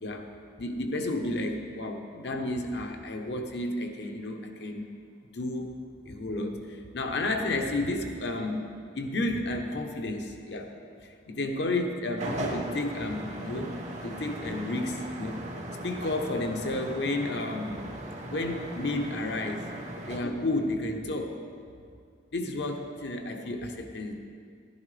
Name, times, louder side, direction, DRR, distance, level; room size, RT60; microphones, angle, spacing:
voice 1, 0.6-4.8 5.3-5.7 6.0-8.7 8.9-10.7 11.0-13.7 14.0-15.4 15.8-17.8 18.3-19.6 20.1-21.3 22.3-24.2, left 2 dB, 65° left, 4 dB, 0.9 m, -32 dB
sound 1, 12.2-20.2, right 1 dB, 40° right, 1.0 m, -38 dB
11.5 x 11.5 x 3.3 m, 2.2 s
head